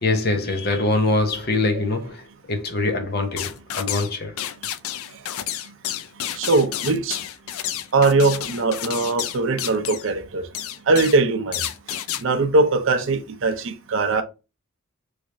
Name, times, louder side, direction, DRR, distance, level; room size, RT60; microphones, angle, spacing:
voice 1, 0.0-4.4, left 2 dB, 45° left, 0.7 m, -23 dB
sound 1, 3.4-4.1 4.4-10.1 10.5-11.2 11.5-12.2, left 11 dB, 75° left, 0.3 m, -30 dB
voice 2, 6.3-7.2 7.9-10.5 10.9-11.6 11.9-14.2, right 3 dB, 60° right, 0.5 m, -21 dB
3.2 x 3.0 x 2.5 m
head